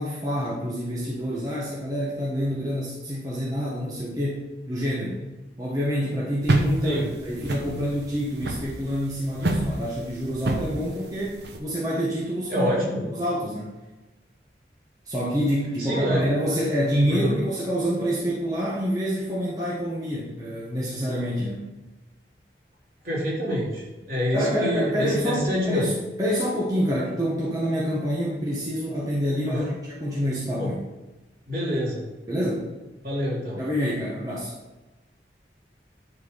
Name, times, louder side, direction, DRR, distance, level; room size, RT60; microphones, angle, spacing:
voice 1, 0.0-5.2 5.6-12.7 13.1-13.7 15.1-21.6 24.3-30.7 32.3-32.7 33.6-34.5, equal, 20° right, -6 dB, 1.3 m, -27 dB
sound 1, 6.4-11.6, right 1 dB, 75° right, 1.0 m, -27 dB
voice 2, 12.5-13.0 15.8-16.5 17.1-17.4 23.0-25.9 29.4-29.7 30.6-30.7 31.5-32.0 33.0-33.6, equal, 55° right, -5 dB, 3.0 m, -27 dB
10.5 x 4.5 x 5.2 m, 1.1 s
head